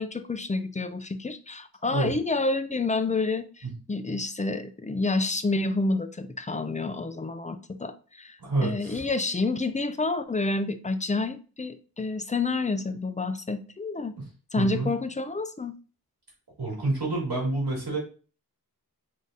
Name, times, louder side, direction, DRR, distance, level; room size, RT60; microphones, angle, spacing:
voice 1, 0.0-14.2 14.5-15.8, left 3 dB, 20° left, 0.4 m, -29 dB
voice 2, 8.4-9.0 14.2-14.3 14.5-14.9 16.6-18.0, right 2 dB, 90° right, 2.1 m, -28 dB
3.7 x 3.6 x 2.7 m
wide cardioid pair, 65°, 38 cm